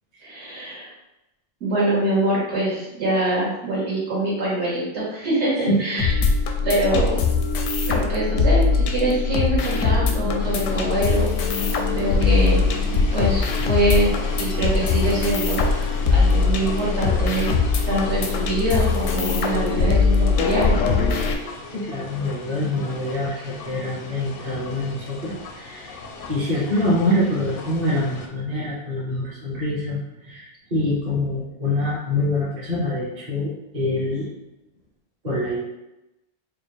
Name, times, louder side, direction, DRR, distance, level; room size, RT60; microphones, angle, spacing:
voice 1, 0.2-0.9 1.6-6.1 6.6-7.2 7.9-12.6 13.1-14.1 14.4-17.5 17.9-21.0, right 1 dB, 60° right, -8 dB, 1.8 m, -24 dB
voice 2, 5.7-6.0 21.7-26.0 26.3-34.3 35.2-35.6, left 1 dB, 35° right, -7 dB, 1.0 m, -25 dB
sound 1, 6.0-21.3, left 4 dB, 90° left, 1.0 m, -21 dB
Fire, 9.5-16.2, right 3 dB, 80° right, 1.0 m, -41 dB
rope-making machinery running, 10.4-28.3, left 3 dB, 60° left, 0.6 m, -37 dB
4.6 x 2.2 x 3.3 m, 0.95 s
omnidirectional pair, 1.3 m